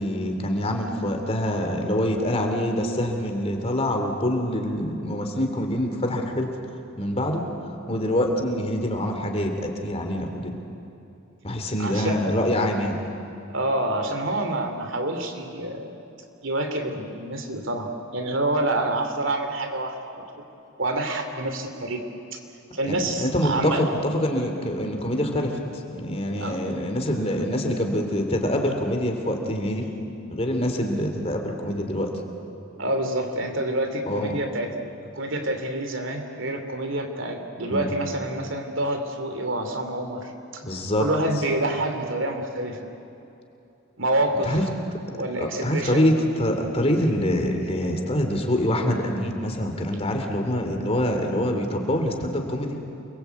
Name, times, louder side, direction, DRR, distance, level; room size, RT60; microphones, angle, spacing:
voice 1, 0.0-6.5 7.0-7.4 7.9-10.6 11.4-13.0 22.8-25.6 25.9-29.9 30.3-32.1 34.1-34.4 37.7-37.9 40.6-41.1 44.4-44.6 45.4-52.8, left 1 dB, 30° left, 3 dB, 3.1 m, -25 dB
voice 2, 11.8-12.2 13.5-15.9 16.4-20.2 20.8-22.0 22.7-23.8 26.4-26.6 32.8-34.8 35.1-40.6 41.0-42.8 44.0-44.6 45.1-46.1, right 1 dB, 70° right, 5 dB, 2.9 m, -27 dB
28.5 x 22.0 x 8.4 m, 2.8 s
head